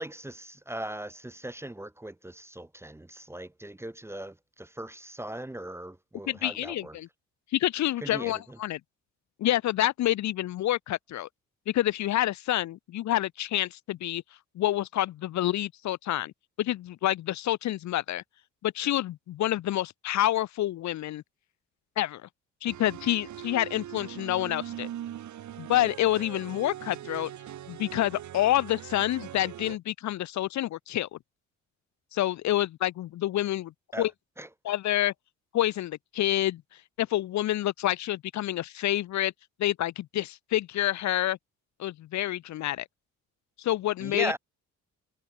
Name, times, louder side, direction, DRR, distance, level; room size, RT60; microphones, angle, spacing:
voice 1, 0.0-7.0 8.0-8.6 33.9-34.1 34.4-34.5 44.0-44.4, right 1 dB, 10° right, 0.8 m, -38 dB
voice 2, 6.3-7.1 7.5-8.8 9.4-11.3 11.7-14.2 14.6-16.3 16.6-18.2 18.6-21.2 22.0-22.2 22.6-24.9 25.6-27.3 27.7-31.1 32.1-34.1 34.6-35.1 35.5-36.6 37.0-39.3 39.6-41.4 41.8-42.8 43.6-44.3, left 14 dB, 65° left, 0.8 m, -28 dB
sound 1, 22.7-29.8, right 11 dB, 70° right, 3.9 m, -41 dB
cardioid pair, 90°, 30 cm